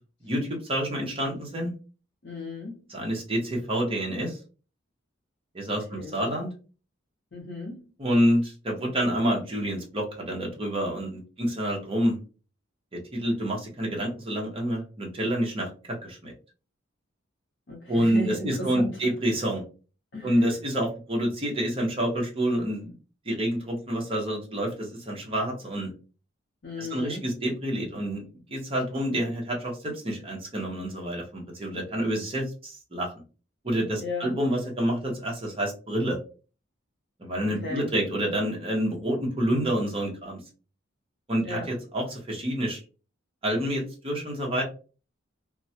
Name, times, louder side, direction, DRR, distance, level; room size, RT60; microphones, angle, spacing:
voice 1, 0.2-1.7 2.9-4.4 5.5-6.5 8.0-12.2 12.9-16.3 17.9-19.6 20.2-22.9 23.3-25.9 26.8-33.1 33.6-36.2 37.2-40.4 41.3-42.8 43.4-44.6, equal, 30° right, -1 dB, 0.7 m, -28 dB
voice 2, 2.2-2.8 5.9-6.1 7.3-7.8 17.7-19.0 20.1-20.4 26.6-27.2 34.0-34.3 37.4-37.9 41.4-41.7, left 2 dB, 60° left, -2 dB, 0.6 m, -35 dB
2.3 x 2.0 x 2.7 m, 0.36 s
head